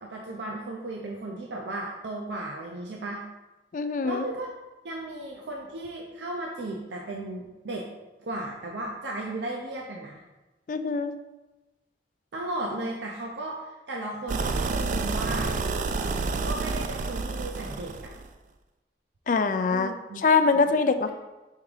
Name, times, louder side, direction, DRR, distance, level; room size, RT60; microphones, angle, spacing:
voice 1, 0.0-3.2 4.0-4.5 4.8-7.9 8.2-10.2 12.3-15.5 16.4-18.1 19.7-20.2 20.5-20.7 20.9-21.1, right 2 dB, 80° right, -1 dB, 0.7 m, -35 dB
voice 2, 3.7-4.2 10.7-11.1 19.3-21.1, left 4 dB, 45° left, 10 dB, 0.3 m, -24 dB
sound 1, 14.3-18.3, right 3 dB, 45° right, 0.3 m, -29 dB
5.5 x 3.5 x 4.9 m, 1.1 s
head